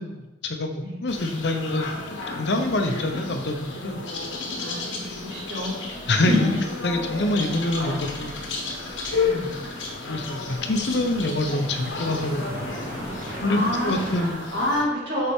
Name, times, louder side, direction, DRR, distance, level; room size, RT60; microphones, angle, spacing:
voice 1, 0.0-4.0 6.1-6.5 6.8-8.4 10.1-13.1 13.4-14.4, left 1 dB, 65° left, 5 dB, 0.7 m, -26 dB
sound 1, 1.1-14.8, left 4 dB, 80° left, 1.1 m, -32 dB
voice 2, 4.6-5.8 6.2-6.5 9.3-9.5 13.5-15.3, left 1 dB, 65° right, -5 dB, 2.1 m, -28 dB
sound 2, 7.7-14.3, right 1 dB, 45° right, 1.2 m, -40 dB
6.6 x 4.3 x 3.6 m, 1.0 s
head